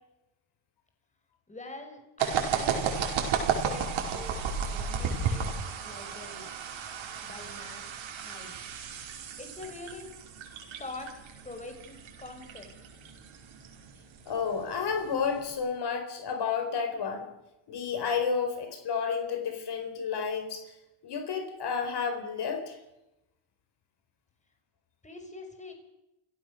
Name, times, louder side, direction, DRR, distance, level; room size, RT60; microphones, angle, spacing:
voice 1, 1.5-4.4 4.7-5.5 5.8-6.5 7.2-7.8 8.2-8.6 9.4-10.1 10.8-11.1 11.4-12.7 25.0-25.7, left 2 dB, 15° left, 4 dB, 5.8 m, -44 dB
sound 1, 2.2-15.5, right 6 dB, 70° right, 5.1 m, -34 dB
voice 2, 14.3-17.3 17.7-20.6 21.0-22.8, left 6 dB, 55° left, 5 dB, 4.6 m, -31 dB
29.0 x 16.5 x 6.6 m, 0.92 s
cardioid pair, 110°, 49 cm